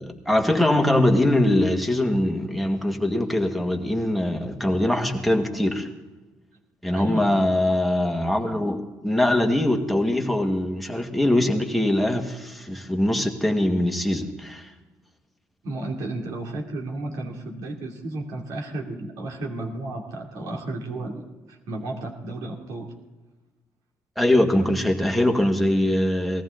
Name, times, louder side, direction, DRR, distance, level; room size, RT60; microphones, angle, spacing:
voice 1, 0.0-5.9 6.8-14.7 24.2-26.4, left 1 dB, ahead, 2 dB, 1.8 m, -22 dB
voice 2, 6.9-7.4 15.6-22.9, right 2 dB, 75° right, 1 dB, 2.9 m, -33 dB
19.0 x 14.5 x 3.9 m, 1.2 s
cardioid pair, 90°, 6 cm